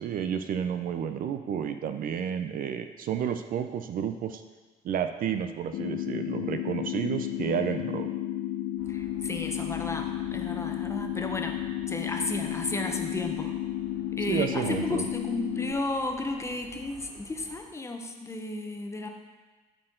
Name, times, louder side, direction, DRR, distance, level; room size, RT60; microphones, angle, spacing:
voice 1, 0.0-4.4 4.8-8.1 14.3-15.0, right 8 dB, 55° right, 8 dB, 0.5 m, -31 dB
sound 1, 5.7-15.7, left 12 dB, 60° left, 0.4 m, -32 dB
sound 2, 8.8-17.6, left 1 dB, 25° right, 2.8 m, -51 dB
voice 2, 8.9-11.6 11.9-13.6 14.1-19.1, left 2 dB, 15° left, 4 dB, 0.9 m, -33 dB
13.0 x 4.4 x 3.8 m, 1.3 s
cardioid pair, 110°, 17 cm